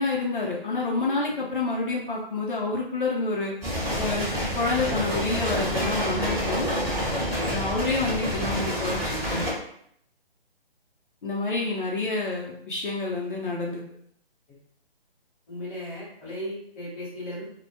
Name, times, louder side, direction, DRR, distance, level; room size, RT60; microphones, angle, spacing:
voice 1, 0.0-3.5 4.0-6.7 7.5-9.4 11.2-13.8, left 3 dB, 60° left, -3 dB, 0.6 m, -28 dB
voice 2, 1.0-1.3 4.8-5.0 5.3-5.9 6.6-7.1 14.5-14.6 15.5-17.4, left 1 dB, 15° left, -11 dB, 0.8 m, -38 dB
sound 1, 3.6-9.5, equal, 15° right, 1.0 m, -28 dB
2.1 x 2.1 x 2.7 m, 0.67 s
hypercardioid pair, 165°, 30 cm